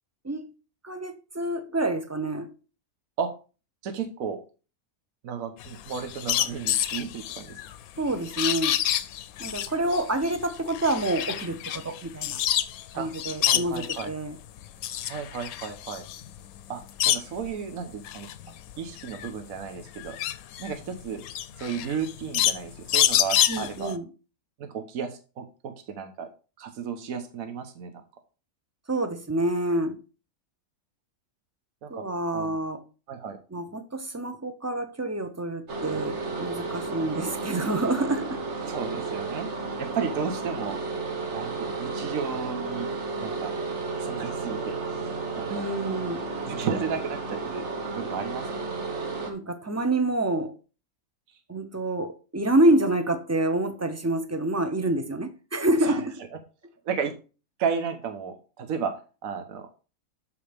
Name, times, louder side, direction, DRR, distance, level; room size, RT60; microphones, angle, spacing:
voice 1, 0.8-2.5 8.0-8.8 9.4-12.4 12.9-14.4 23.5-24.1 28.9-30.0 31.9-32.8 33.5-38.4 45.5-46.3 49.3-50.6 51.5-56.2, right 1 dB, 20° right, 0.4 m, -27 dB
voice 2, 3.8-4.4 5.2-7.6 13.0-13.1 13.4-14.1 15.1-16.0 16.7-18.3 18.8-20.2 20.6-21.2 21.6-23.9 24.6-26.3 26.6-27.9 31.8-32.0 32.3-32.5 33.1-33.4 38.7-39.5 39.8-40.8 41.3-42.9 43.2-43.6 44.0-45.8 46.4-47.7 47.9-48.5 55.8-56.0 56.8-57.1 57.6-58.9 59.2-59.7, right 6 dB, 75° right, 1.4 m, -33 dB
sound 1, 5.6-12.8 13.1-14.1 14.6-17.5 17.9-23.9, left 12 dB, 85° left, 1.0 m, -27 dB
sound 2, 35.7-49.3, right 3 dB, 55° right, 1.7 m, -33 dB
12.5 x 5.1 x 3.4 m
omnidirectional pair, 1.5 m